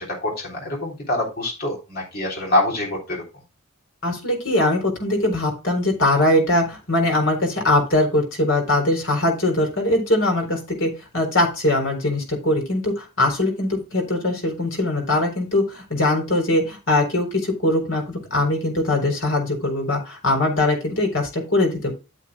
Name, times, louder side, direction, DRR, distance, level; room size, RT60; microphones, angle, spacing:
voice 1, 0.0-3.2, left 1 dB, 45° left, -2 dB, 3.5 m, -25 dB
voice 2, 4.0-21.9, left 1 dB, 60° left, 3 dB, 3.8 m, -21 dB
12.0 x 8.3 x 2.3 m, 0.28 s
head